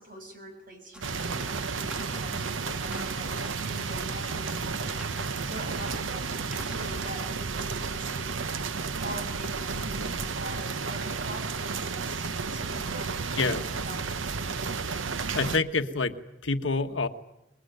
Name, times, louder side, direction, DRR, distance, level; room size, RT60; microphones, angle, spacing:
voice 1, 0.0-8.4 9.0-12.3 12.5-14.2, right 1 dB, 45° right, 5 dB, 6.9 m, -44 dB
sound 1, 0.9-7.1, equal, 5° right, 1.8 m, -46 dB
sound 2, 1.0-15.6, right 4 dB, 80° right, 0.9 m, -32 dB
voice 2, 15.3-16.2 16.4-17.1, left 3 dB, 75° left, 8 dB, 1.4 m, -26 dB
27.0 x 21.5 x 9.3 m, 0.94 s
head